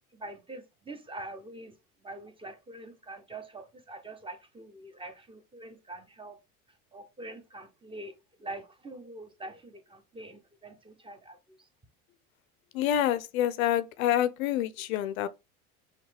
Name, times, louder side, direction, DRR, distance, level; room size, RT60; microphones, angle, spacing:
voice 1, 0.1-1.7 2.0-6.4 6.9-8.1 8.4-11.6, right 2 dB, 10° right, 0.6 m, -44 dB
voice 2, 12.7-15.3, left 11 dB, 70° left, 0.5 m, -27 dB
5.5 x 2.2 x 3.3 m
hypercardioid pair, 75°, 43 cm